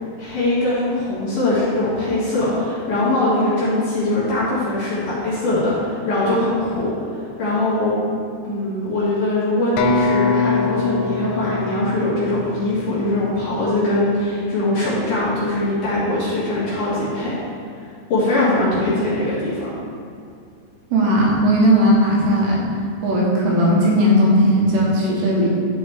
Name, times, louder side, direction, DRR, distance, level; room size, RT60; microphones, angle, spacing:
voice 1, 0.2-6.9 7.4-7.9 8.4-17.3 18.1-19.7, left 2 dB, 55° left, -10 dB, 2.5 m, -21 dB
sound 1, 9.8-13.5, left 4 dB, 90° left, 3.2 m, -23 dB
voice 2, 20.9-22.7 23.0-25.5, equal, 70° right, -4 dB, 3.1 m, -16 dB
11.5 x 4.6 x 3.5 m, 2.4 s
omnidirectional pair, 5.6 m